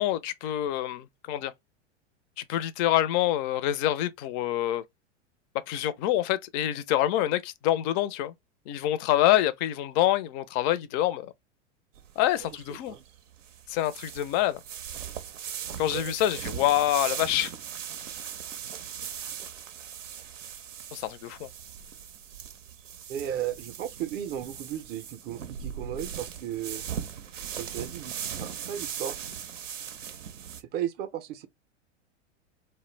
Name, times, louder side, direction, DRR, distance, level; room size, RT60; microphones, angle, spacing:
voice 1, 0.0-1.5 2.4-4.8 5.7-8.3 8.7-11.3 12.2-13.0 13.7-14.6 15.8-17.5 20.9-21.5, left 13 dB, 40° left, 0.4 m, -26 dB
sound 1, 11.9-30.6, right 8 dB, 85° right, 0.5 m, -39 dB
voice 2, 12.4-13.0 15.9-16.1 23.1-26.9 27.5-29.2 30.6-31.5, right 10 dB, 30° right, 0.4 m, -35 dB
2.1 x 2.1 x 3.1 m
hypercardioid pair, 95°, 37 cm